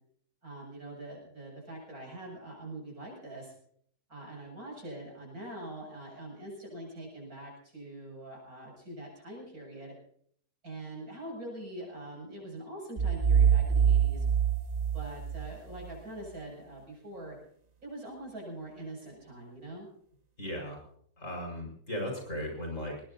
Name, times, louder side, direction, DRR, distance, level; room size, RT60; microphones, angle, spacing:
voice 1, 0.4-3.5 4.1-10.0 10.6-14.3 14.9-17.4 17.8-19.9, right 1 dB, 65° right, -1 dB, 8.0 m, -43 dB
sound 1, 13.0-15.8, right 8 dB, 40° right, 0.7 m, -25 dB
voice 2, 20.4-20.8 21.2-23.0, equal, 50° left, 0 dB, 5.7 m, -36 dB
20.5 x 20.0 x 2.8 m, 0.63 s
omnidirectional pair, 1.7 m